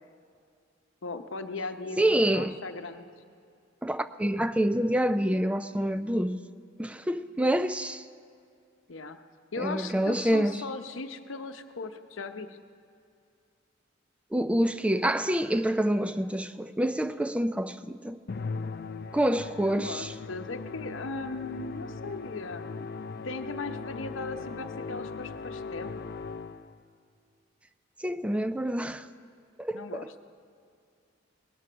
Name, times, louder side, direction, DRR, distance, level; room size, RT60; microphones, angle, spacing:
voice 1, 1.0-3.1 8.9-9.2 9.5-12.6 19.7-22.9 23.2-26.1 29.7-30.2, left 3 dB, 70° left, 0.8 m, -38 dB
voice 2, 2.0-2.6 3.8-6.4 6.8-8.0 9.6-10.6 14.3-18.2 19.1-20.1 28.0-29.1 29.6-30.0, right 1 dB, 5° right, 0.4 m, -27 dB
Musical instrument, 18.3-26.8, left 4 dB, 50° left, 0.5 m, -39 dB
19.5 x 11.5 x 6.2 m
head